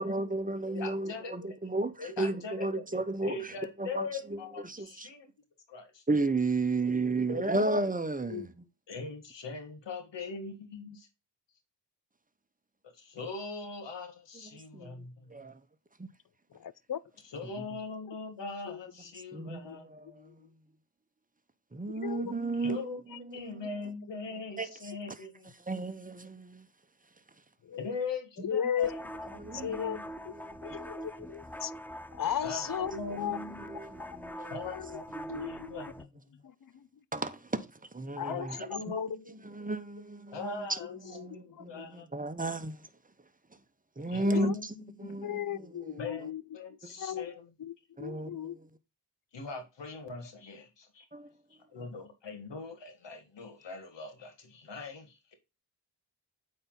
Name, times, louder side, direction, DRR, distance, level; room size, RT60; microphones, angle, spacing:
voice 1, 0.0-5.1 6.1-8.5 14.5-15.6 16.0-16.1 17.6-17.7 19.3-20.4 21.7-22.8 23.2-23.7 24.6-24.7 25.7-26.7 29.4-29.8 30.3-30.8 33.1-34.7 35.1-35.5 37.1-38.9 39.4-40.8 41.0-42.9 44.0-46.0 46.8-46.9 48.0-48.7 51.1-51.3, right 2 dB, 20° right, 1.0 m, -34 dB
voice 2, 0.6-1.6 2.0-5.3 5.7-6.0 8.9-11.1 12.9-15.3 17.3-19.9 22.5-25.5 27.8-29.0 29.3-30.1 32.4-33.7 34.5-35.0 35.4-36.4 38.3-39.3 40.3-40.9 41.3-42.1 44.1-44.7 45.0-45.2 46.0-47.5 49.3-51.1 51.7-55.4, left 4 dB, 85° left, 1.9 m, -41 dB
voice 3, 7.3-7.8 8.3-8.5 16.5-17.0 18.7-18.8 19.6-19.8 20.2-20.5 21.9-22.4 27.6-28.1 28.4-28.9 29.5-30.0 30.2-30.3 30.6-31.7 32.1-33.4 34.7-35.0 35.3-35.9 36.4-36.9 38.2-39.1 40.9-41.9 44.2-44.5 45.2-46.4 47.0-48.6, left 9 dB, 50° left, 0.6 m, -36 dB
sound 1, 28.8-36.0, equal, 5° left, 0.6 m, -43 dB
8.6 x 4.3 x 3.8 m
cardioid pair, 55°, 42 cm